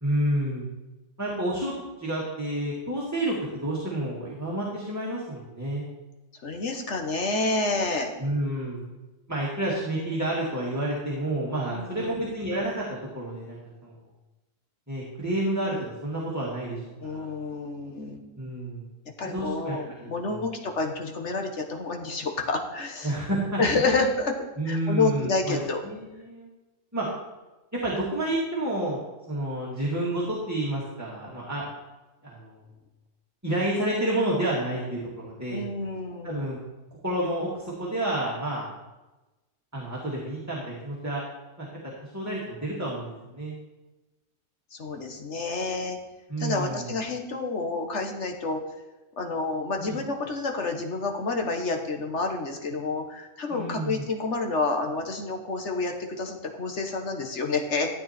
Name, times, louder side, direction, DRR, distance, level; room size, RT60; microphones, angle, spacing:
voice 1, 0.0-0.7 1.2-1.7 2.0-3.4 3.6-5.8 8.2-8.9 9.3-12.9 13.1-13.9 14.9-17.3 18.4-18.9 19.3-20.4 23.0-23.6 24.6-26.5 26.9-27.1 27.7-29.0 29.3-31.6 32.2-32.6 33.4-35.7 36.2-36.6 37.0-38.7 39.7-41.2 41.6-41.7 42.0-43.5 46.3-46.9 49.8-50.0 53.5-54.1, right 1 dB, 15° right, -5 dB, 2.0 m, -30 dB
voice 2, 6.4-8.1 11.7-12.2 17.0-18.2 19.2-23.1 23.6-24.3 24.7-25.8 35.5-36.4 44.7-46.0 46.4-48.6 49.2-57.9, left 3 dB, 65° left, 4 dB, 1.7 m, -29 dB
13.0 x 8.8 x 4.3 m, 1.1 s
omnidirectional pair, 1.3 m